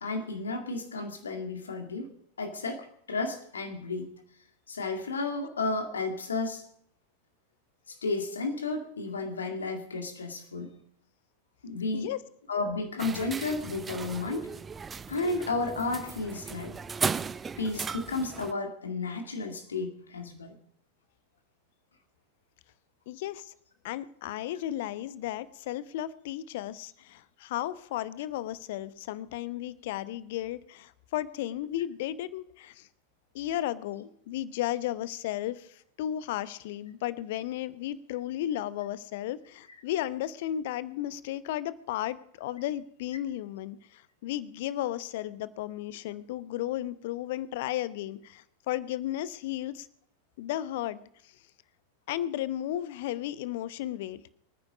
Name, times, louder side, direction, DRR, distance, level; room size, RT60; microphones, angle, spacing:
voice 1, 0.0-2.1 2.4-4.1 4.7-6.7 7.9-10.7 11.6-12.1 12.5-14.5 15.1-16.8 17.6-20.5, left 3 dB, 70° left, 5 dB, 2.1 m, -32 dB
sound 1, 13.0-18.5, right 5 dB, 15° right, 0.5 m, -36 dB
voice 2, 23.1-23.5 23.8-32.9 33.3-49.9 50.4-51.3 52.1-54.2, left 13 dB, 50° left, 16 dB, 0.8 m, -34 dB
24.5 x 9.7 x 5.1 m, 0.69 s
figure-of-eight pair, 90°, 0 cm